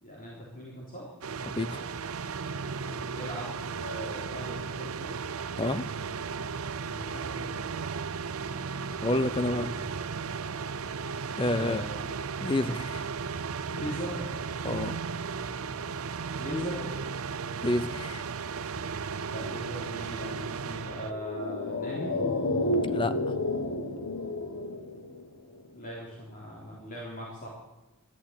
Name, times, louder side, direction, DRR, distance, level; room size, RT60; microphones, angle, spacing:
voice 1, 0.0-1.1 2.8-5.2 6.9-7.8 11.5-12.0 13.6-14.3 16.4-16.9 19.3-22.1 25.7-27.5, equal, 40° left, -4 dB, 3.6 m, -39 dB
sound 1, 1.2-21.1, right 5 dB, 70° right, 0.6 m, -35 dB
voice 2, 1.6-1.9 5.6-5.9 9.0-9.8 11.4-11.8 12.4-13.0 14.6-15.0 17.6-18.3 22.9-23.1, left 2 dB, 20° left, 13 dB, 0.6 m, -29 dB
sound 2, 21.0-25.6 25.9-26.0, left 2 dB, 85° left, 1.7 m, -31 dB
12.5 x 12.5 x 8.8 m, 1.0 s
head